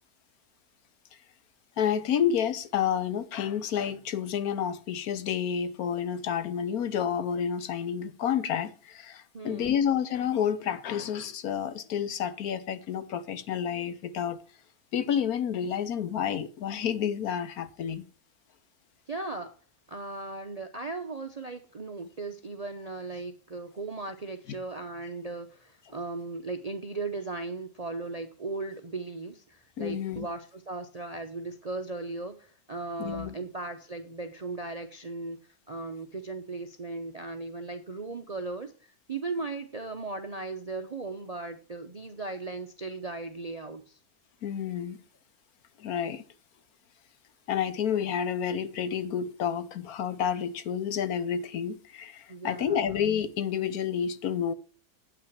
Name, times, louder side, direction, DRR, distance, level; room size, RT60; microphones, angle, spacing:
voice 1, 1.8-14.4 14.9-18.0 29.8-30.3 33.0-33.4 44.4-45.0 45.8-46.2 47.5-54.5, left 8 dB, 70° left, 1.2 m, -30 dB
voice 2, 9.3-9.8 19.1-19.5 19.9-35.4 35.7-44.0 52.3-52.8, right 3 dB, 45° right, 0.5 m, -37 dB
8.8 x 5.9 x 6.6 m
omnidirectional pair, 1.7 m